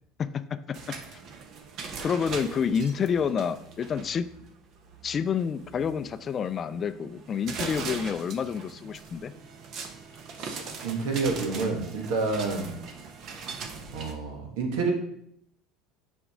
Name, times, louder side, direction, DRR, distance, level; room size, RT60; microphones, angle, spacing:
voice 1, 0.2-1.0 2.0-4.3 5.0-9.3, left 7 dB, 35° left, 13 dB, 0.4 m, -29 dB
sound 1, 0.7-14.1, right 5 dB, 55° right, 1.0 m, -41 dB
voice 2, 10.3-12.8 13.9-14.9, right 3 dB, 75° right, 2 dB, 1.5 m, -29 dB
6.8 x 5.3 x 3.7 m, 0.72 s
supercardioid pair, 100°, 0 cm